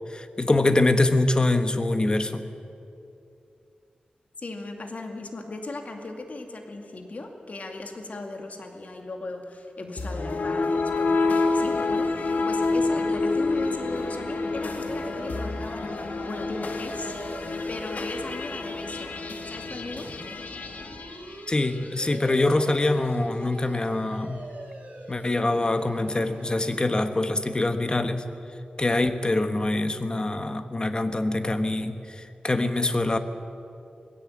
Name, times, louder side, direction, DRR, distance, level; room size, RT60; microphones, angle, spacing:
voice 1, 0.1-2.4 21.5-24.4 25.1-28.3 28.8-33.2, left 2 dB, 30° left, 9 dB, 1.4 m, -24 dB
voice 2, 4.4-17.1 17.7-19.2 19.5-20.1, left 2 dB, 55° left, 4 dB, 2.4 m, -37 dB
sound 1, 10.0-22.3, left 3 dB, 75° left, 1.6 m, -28 dB
sound 2, 12.6-27.0, right 2 dB, 60° right, 4.3 m, -44 dB
20.0 x 16.5 x 8.8 m, 2.7 s
wide cardioid pair, 80°, 3 cm